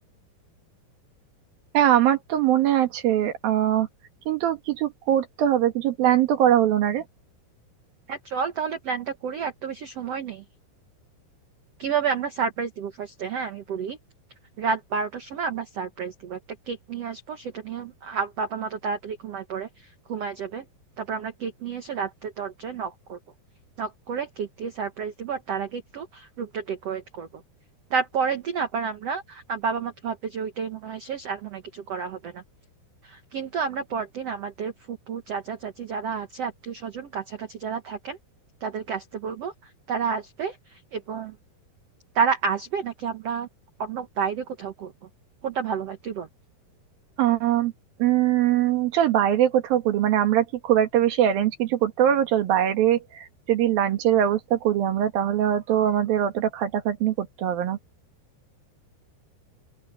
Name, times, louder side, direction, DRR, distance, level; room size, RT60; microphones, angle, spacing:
voice 1, 1.7-3.9 4.3-7.1 47.2-47.7 48.0-57.8, right 11 dB, 65° right, 3.2 m, -22 dB
voice 2, 8.1-10.4 11.8-14.0 14.6-16.4 16.6-20.7 21.0-23.2 23.8-27.4 27.9-32.4 33.0-38.2 38.6-41.4 42.1-43.5 43.8-44.9 45.4-46.3, right 6 dB, 80° right, 1.4 m, -30 dB
open air
omnidirectional pair, 4.8 m